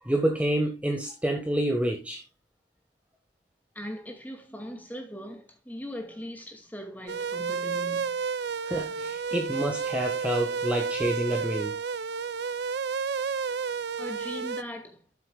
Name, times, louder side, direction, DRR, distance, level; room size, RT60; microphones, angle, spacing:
voice 1, 0.0-2.2 8.6-11.8, right 1 dB, 5° right, 1.5 m, -28 dB
voice 2, 3.7-8.2 14.0-15.0, equal, 10° left, 2.3 m, -39 dB
sound 1, 7.1-14.6, right 6 dB, 60° right, 0.6 m, -31 dB
13.0 x 7.6 x 2.3 m
head